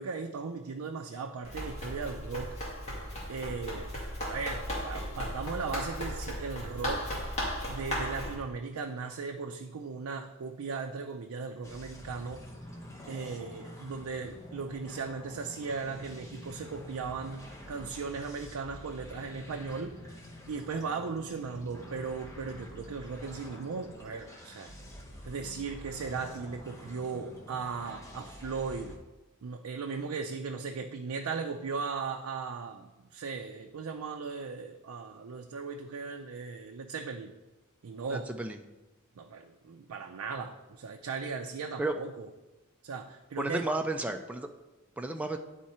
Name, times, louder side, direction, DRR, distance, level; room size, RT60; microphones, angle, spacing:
voice 1, 0.0-2.6 3.3-7.1 7.7-12.5 13.1-20.0 20.5-24.7 25.3-29.0 29.4-37.3 37.8-38.3 39.2-42.3 42.8-43.7, right 5 dB, 85° right, 4 dB, 0.4 m, -37 dB
Run, 1.4-8.3, equal, 30° left, 1.8 m, -36 dB
sound 1, 11.6-29.0, left 1 dB, 15° left, 0.8 m, -48 dB
voice 2, 38.1-38.6 41.8-41.9 43.4-44.5 45.0-45.4, right 2 dB, 5° right, 5 dB, 0.4 m, -32 dB
10.0 x 3.7 x 4.2 m, 1.1 s
head